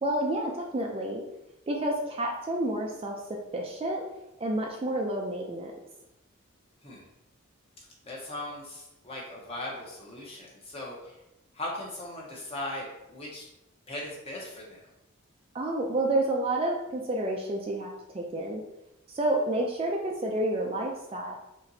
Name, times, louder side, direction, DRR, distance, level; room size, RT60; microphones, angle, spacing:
voice 1, 0.0-1.2 1.7-3.2 3.5-4.0 4.4-5.7 15.5-17.9 18.1-18.6 19.1-21.4, right 1 dB, 25° right, 0 dB, 0.3 m, -29 dB
voice 2, 8.0-11.2 11.5-13.5 13.9-14.8, left 1 dB, 30° left, -3 dB, 0.8 m, -39 dB
4.1 x 2.9 x 2.7 m, 0.89 s
head